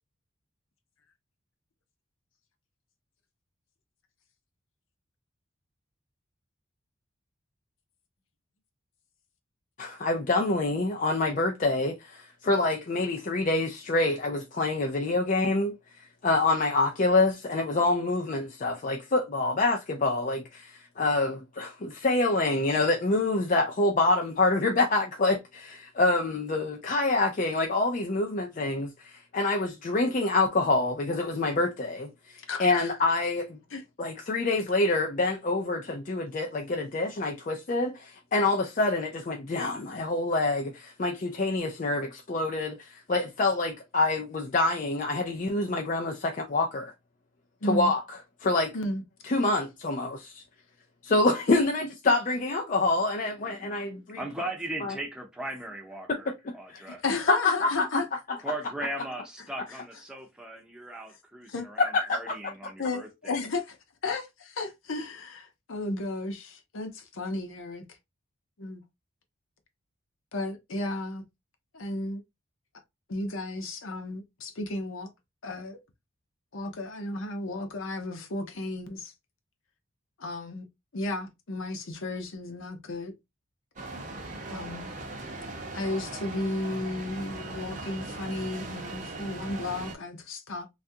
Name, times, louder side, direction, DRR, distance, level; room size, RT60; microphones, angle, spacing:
voice 1, 9.8-15.8 16.2-20.7 21.0-33.6 34.0-46.9 47.6-48.7 49.2-50.4 51.0-54.2 54.8-55.0 56.1-56.3 56.7-56.8 57.3-58.0 61.8-62.4, left 2 dB, 40° left, 0.4 m, -26 dB
voice 2, 32.5-32.9 33.7-33.8 47.6-47.9 48.7-49.0 56.9-58.0 61.5-61.7 62.8-63.8 64.0-67.8 68.6-68.8 70.3-71.2 71.7-72.2 73.1-75.1 75.4-75.8 76.5-79.1 80.2-80.6 80.9-83.1 84.5-84.9 85.7-90.7, left 2 dB, 70° left, 0.7 m, -33 dB
voice 3, 53.4-53.9 54.1-57.0 58.4-59.2 59.5-63.4, right 1 dB, 5° right, 0.7 m, -38 dB
sound 1, 83.8-90.0, right 2 dB, 35° right, 0.7 m, -39 dB
3.4 x 2.4 x 2.6 m
head